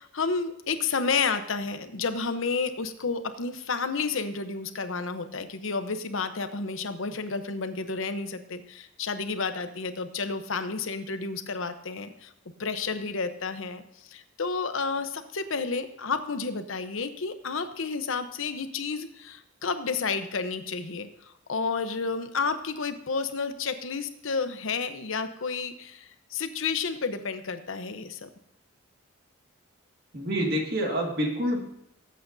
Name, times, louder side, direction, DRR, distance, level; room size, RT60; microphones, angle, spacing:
voice 1, 0.0-12.3 12.6-13.8 14.1-21.1 21.5-28.3, left 4 dB, 75° left, 10 dB, 0.8 m, -31 dB
voice 2, 30.1-31.6, equal, 50° right, 0 dB, 2.0 m, -27 dB
18.0 x 8.5 x 2.6 m, 0.79 s
head